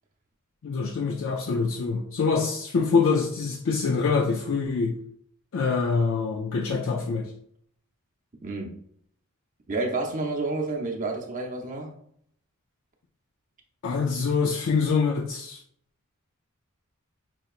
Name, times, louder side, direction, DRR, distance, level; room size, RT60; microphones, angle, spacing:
voice 1, 0.6-5.0 5.5-7.3 13.8-15.6, left 4 dB, 60° left, 3 dB, 0.4 m, -25 dB
voice 2, 9.7-11.9, right 3 dB, 40° right, 1 dB, 0.7 m, -29 dB
5.4 x 2.8 x 2.4 m, 0.66 s
head